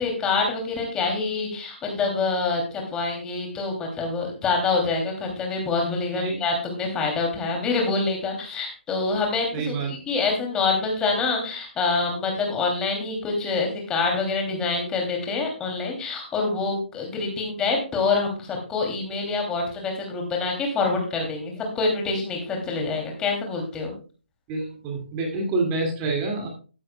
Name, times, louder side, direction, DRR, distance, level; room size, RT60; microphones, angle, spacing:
voice 1, 0.0-23.9, left 4 dB, 10° left, 1 dB, 2.8 m, -26 dB
voice 2, 9.5-10.0 24.5-26.5, right 3 dB, 20° right, 1 dB, 2.2 m, -27 dB
13.5 x 11.0 x 2.2 m, 0.36 s
figure-of-eight pair, 145°, 6 cm